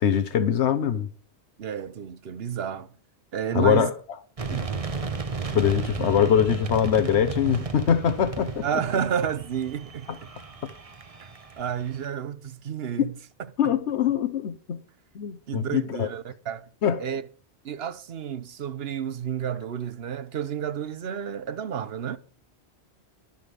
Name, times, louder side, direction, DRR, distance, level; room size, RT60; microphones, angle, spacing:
voice 1, 0.0-1.1 3.5-3.9 5.5-8.7 13.6-14.8 15.1-16.1 16.8-17.0, left 8 dB, 85° left, 1.2 m, -23 dB
voice 2, 1.6-2.9 3.3-3.9 4.5-4.7 8.6-10.3 11.2-11.3 11.6-13.1 13.6-13.7 15.5-16.7 17.0-17.3 17.6-22.2, right 8 dB, 65° right, 1.0 m, -31 dB
sound 1, 4.4-12.1, right 4 dB, 35° right, 1.0 m, -34 dB
11.0 x 10.5 x 5.1 m
omnidirectional pair, 1.1 m